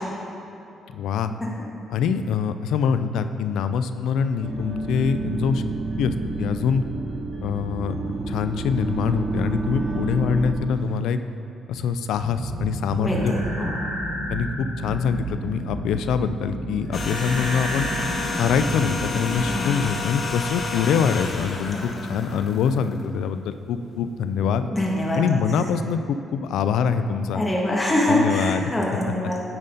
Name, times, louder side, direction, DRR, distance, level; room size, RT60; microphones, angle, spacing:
voice 1, 0.9-1.3 1.9-5.6 6.0-6.8 7.4-7.9 8.3-11.2 11.7-13.7 14.3-17.9 18.4-24.7 25.1-27.4 28.1-28.7, left 6 dB, 80° left, 10 dB, 0.3 m, -24 dB
sound 1, 4.4-10.5, right 3 dB, 25° right, 1.3 m, -29 dB
sound 2, 12.2-19.6, right 1 dB, 50° right, 1.8 m, -31 dB
voice 2, 13.0-14.2 19.3-19.7 21.7-21.8 24.7-25.2 27.3-29.4, left 1 dB, 15° left, -4 dB, 1.4 m, -24 dB
sound 3, 16.9-23.2 23.5-23.7, left 4 dB, 45° left, 0.8 m, -30 dB
9.1 x 4.1 x 5.2 m, 2.7 s
cardioid pair, 90°, 0 cm